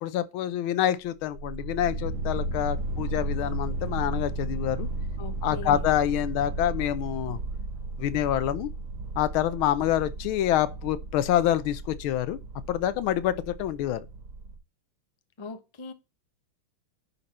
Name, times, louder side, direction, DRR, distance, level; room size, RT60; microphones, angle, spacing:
voice 1, 0.0-4.9 5.4-7.4 8.0-8.7 9.2-12.4 12.7-14.1, left 12 dB, 80° left, 1.5 m, -27 dB
sound 1, 1.1-14.6, right 2 dB, 40° right, 1.7 m, -34 dB
voice 2, 5.2-5.9 15.4-15.9, left 4 dB, 45° left, 0.3 m, -40 dB
10.5 x 4.3 x 4.2 m
omnidirectional pair, 2.3 m